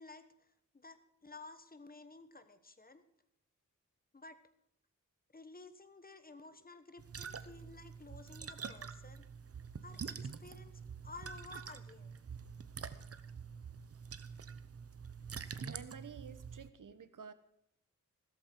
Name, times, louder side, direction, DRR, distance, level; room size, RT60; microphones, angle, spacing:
voice 1, 0.0-3.0 4.1-4.4 5.3-9.2 9.8-10.7 11.0-12.1, left 3 dB, 30° left, 10 dB, 1.2 m, -53 dB
sound 1, 7.0-16.7, right 6 dB, 50° right, 0.9 m, -46 dB
voice 2, 15.6-17.3, right 6 dB, 85° right, 12 dB, 1.1 m, -51 dB
15.5 x 13.5 x 4.6 m, 0.75 s
wide cardioid pair, 130°, 31 cm